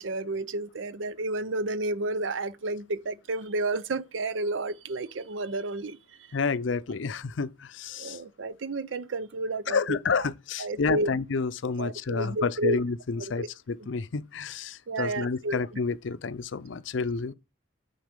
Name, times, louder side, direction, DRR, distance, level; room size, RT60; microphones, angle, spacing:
voice 1, 0.0-6.4 7.9-10.3 10.6-11.1 11.8-12.8 13.2-13.5 13.8-13.9 14.9-15.6, right 2 dB, 85° right, 0.6 m, -31 dB
voice 2, 6.3-8.2 9.7-17.3, left 4 dB, 85° left, 0.5 m, -30 dB
9.4 x 4.1 x 5.3 m
head